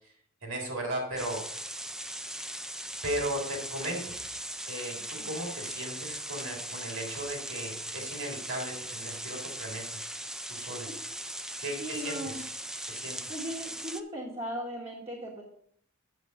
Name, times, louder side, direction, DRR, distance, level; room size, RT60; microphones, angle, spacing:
voice 1, 0.4-1.4 3.0-4.0 4.7-10.0 10.5-10.9 11.6-12.4 12.9-13.2, right 1 dB, 75° right, 0 dB, 3.5 m, -36 dB
sound 1, 1.2-14.0, right 1 dB, 5° right, 0.4 m, -39 dB
voice 2, 11.8-12.4 13.3-15.4, equal, 30° right, -3 dB, 1.4 m, -37 dB
8.2 x 6.8 x 5.1 m, 0.65 s
head